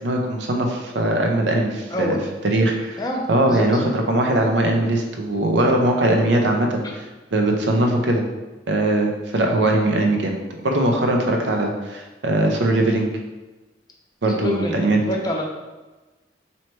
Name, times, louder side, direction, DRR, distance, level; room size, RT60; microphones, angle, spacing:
voice 1, 0.0-2.2 2.4-3.0 3.3-6.8 7.3-8.2 8.7-10.3 10.6-13.1 14.2-15.0, right 1 dB, 85° right, 2 dB, 0.6 m, -20 dB
voice 2, 1.9-2.2 3.0-3.7 6.8-7.0 14.4-15.4, left 1 dB, 20° left, 0 dB, 0.5 m, -26 dB
4.3 x 2.8 x 3.2 m, 1.2 s
head